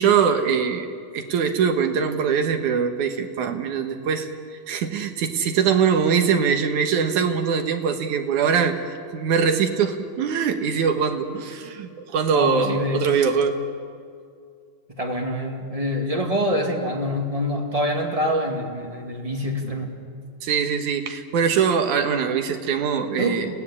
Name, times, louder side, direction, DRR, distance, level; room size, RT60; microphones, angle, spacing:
voice 1, 0.0-8.8 9.1-13.6 20.4-23.5, right 6 dB, 60° right, 6 dB, 2.4 m, -22 dB
voice 2, 12.3-13.2 14.9-19.9 23.2-23.5, equal, 20° right, 1 dB, 1.1 m, -26 dB
30.0 x 17.5 x 8.6 m, 2.3 s
omnidirectional pair, 4.4 m